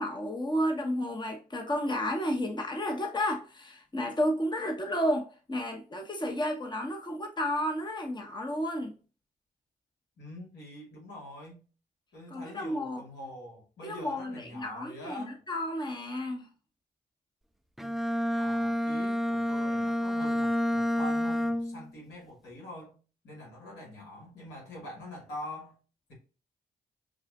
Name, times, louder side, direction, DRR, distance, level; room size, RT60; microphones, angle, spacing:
voice 1, 0.0-8.9 12.3-13.0 13.8-16.5, equal, 25° left, 1.0 m, -32 dB
voice 2, 10.2-11.6 12.1-15.4 18.3-22.9 23.2-25.8, left 1 dB, 85° left, 1.8 m, -45 dB
Bowed string instrument, 17.8-21.9, left 1 dB, ahead, 0.3 m, -29 dB
6.2 x 2.4 x 2.4 m
supercardioid pair, 55°, 17 cm